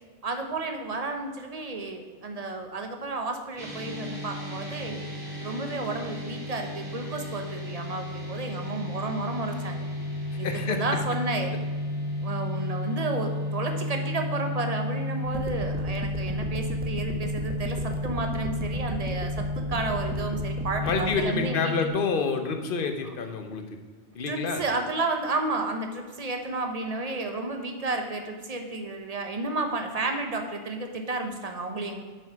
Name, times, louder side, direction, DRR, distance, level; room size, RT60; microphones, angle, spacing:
voice 1, 0.2-5.0 5.4-9.8 10.4-11.5 12.2-21.9 23.0-23.1 24.3-32.0, right 2 dB, 35° right, 4 dB, 0.9 m, -32 dB
sound 1, 3.6-21.9, left 1 dB, 50° right, 2.4 m, -32 dB
voice 2, 10.4-10.8 20.8-23.6 24.1-24.6, left 5 dB, 55° left, 6 dB, 1.0 m, -28 dB
sound 2, 15.3-21.2, right 1 dB, 10° right, 0.5 m, -36 dB
7.6 x 5.6 x 5.7 m, 1.4 s
omnidirectional pair, 1.2 m